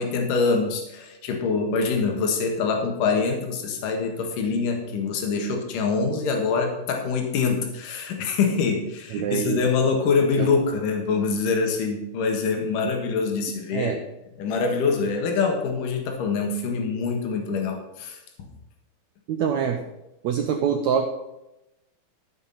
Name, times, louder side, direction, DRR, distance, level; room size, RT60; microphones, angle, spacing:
voice 1, 0.0-13.9 14.4-18.2, left 4 dB, 65° left, 2 dB, 3.0 m, -24 dB
voice 2, 9.1-9.7 10.4-10.5 13.7-14.0 19.3-19.8 20.2-21.1, right 7 dB, 90° right, 4 dB, 1.6 m, -24 dB
14.0 x 5.9 x 5.7 m, 0.91 s
omnidirectional pair, 4.2 m